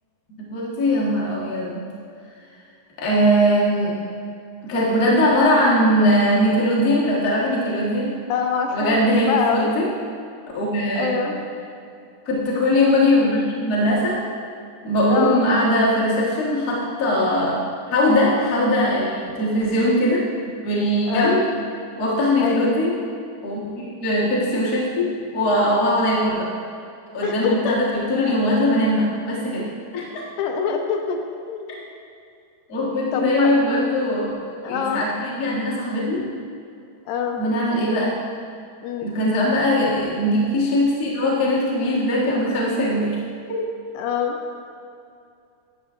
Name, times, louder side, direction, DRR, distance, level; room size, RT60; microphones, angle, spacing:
voice 1, 0.4-1.9 3.0-4.0 4.6-8.2 8.7-9.9 10.5-11.2 12.3-14.2 14.8-17.6 17.9-21.5 22.0-23.0 23.4-26.5 27.1-29.7 29.9-30.0 32.7-36.3 37.4-38.2 39.0-43.2 43.5-43.6, left 1 dB, 55° left, -6 dB, 0.9 m, -20 dB
voice 2, 8.3-9.7 11.0-11.4 15.1-15.4 21.1-21.5 22.4-22.6 27.2-27.8 30.4-31.2 31.5-31.8 33.1-33.5 34.6-35.0 37.1-37.4 38.8-39.1 44.0-44.4, left 6 dB, 80° left, 3 dB, 2.1 m, -24 dB
11.5 x 7.0 x 2.5 m, 2.5 s
omnidirectional pair, 3.7 m